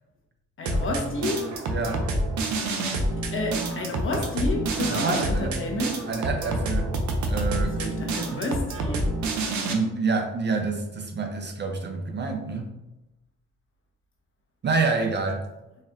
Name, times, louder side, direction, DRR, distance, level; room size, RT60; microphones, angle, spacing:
voice 1, 0.6-1.6 3.3-6.0 7.5-9.2, left 3 dB, 45° left, 0 dB, 1.0 m, -31 dB
sound 1, 0.6-9.7, right 2 dB, 70° right, 0.8 m, -28 dB
voice 2, 1.7-2.0 4.9-5.5 6.1-6.9 7.3-8.0 8.3-8.5 9.7-12.7 14.6-15.4, right 4 dB, 35° right, 4 dB, 0.5 m, -27 dB
4.3 x 2.5 x 3.5 m, 0.96 s
cardioid pair, 90°, 30 cm